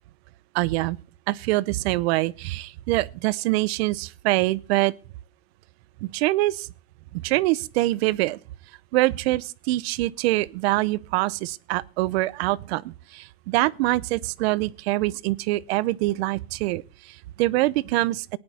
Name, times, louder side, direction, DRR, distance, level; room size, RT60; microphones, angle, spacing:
voice 1, 0.5-1.0 1.3-4.9 6.0-6.7 7.1-8.4 8.9-18.4, right 18 dB, 70° right, 0.7 m, -24 dB
18.0 x 10.5 x 4.2 m
supercardioid pair, 125°, 33 cm